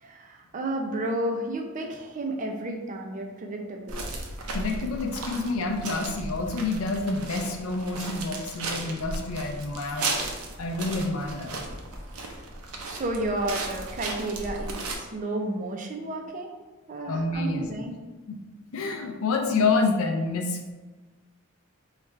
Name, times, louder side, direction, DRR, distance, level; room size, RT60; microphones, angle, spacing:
voice 1, 0.0-4.0 12.8-16.5 16.9-18.0, right 1 dB, 35° right, 2 dB, 0.5 m, -32 dB
sound 1, 3.9-15.0, right 2 dB, 90° right, 0.6 m, -35 dB
voice 2, 4.5-10.1 10.6-11.5 17.1-17.7 18.3-18.4 18.7-20.7, left 3 dB, 75° left, 2 dB, 0.5 m, -28 dB
3.2 x 2.4 x 4.3 m, 1.3 s
head